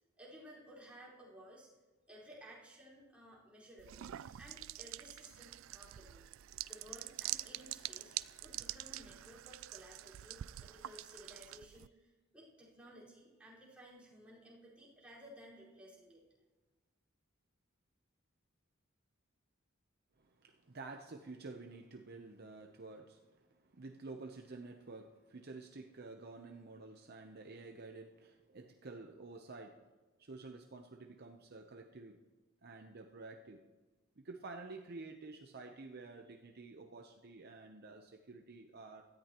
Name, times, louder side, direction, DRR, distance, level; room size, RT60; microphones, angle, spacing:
voice 1, 0.2-1.7 2.1-4.1 4.4-6.2 6.7-8.1 8.4-16.2, equal, 5° right, -7 dB, 4.7 m, -56 dB
sound 1, 3.8-11.9, right 14 dB, 75° right, 0.3 m, -45 dB
voice 2, 20.2-29.8 30.2-32.2 32.6-33.6 34.2-39.0, right 3 dB, 50° right, 4 dB, 0.8 m, -50 dB
17.0 x 13.5 x 3.0 m, 1.2 s
head